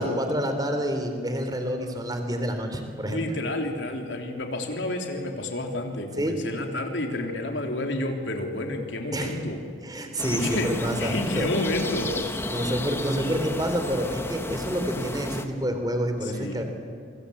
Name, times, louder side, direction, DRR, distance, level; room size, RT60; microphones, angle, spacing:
voice 1, 0.0-3.2 6.2-6.4 9.1-9.4 9.8-11.5 12.4-16.6, equal, 20° right, 6 dB, 3.5 m, -28 dB
voice 2, 3.1-9.6 10.3-12.1 16.2-16.6, left 1 dB, 80° left, 3 dB, 3.3 m, -30 dB
sound 1, 10.2-15.5, left 1 dB, 15° left, 1.5 m, -32 dB
27.5 x 25.0 x 8.6 m, 2.3 s
head